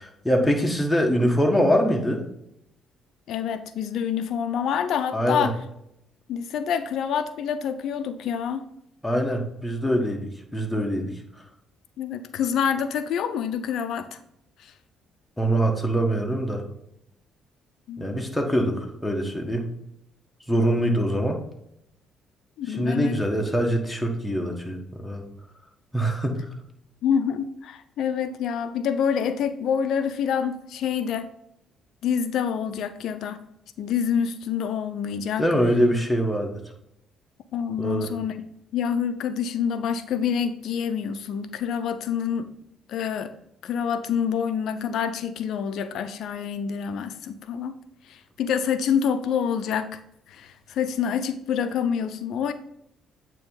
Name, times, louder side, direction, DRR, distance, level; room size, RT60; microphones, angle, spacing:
voice 1, 0.0-2.2 5.1-5.5 9.0-11.1 15.4-16.6 18.0-19.7 20.5-21.4 22.7-25.3 25.9-26.4 35.4-36.6 37.8-38.1, equal, 5° left, 1 dB, 1.4 m, -24 dB
voice 2, 3.3-5.6 6.3-8.6 12.0-14.2 14.6-14.7 17.9-18.0 20.9-21.0 22.6-23.2 27.0-31.3 32.0-33.4 33.8-35.4 37.5-38.3 38.7-42.5 42.9-43.3 43.6-47.7 48.1-50.0 50.3-52.5, left 7 dB, 70° left, 10 dB, 0.5 m, -27 dB
8.6 x 3.0 x 3.8 m, 0.79 s
supercardioid pair, 65°, 0 cm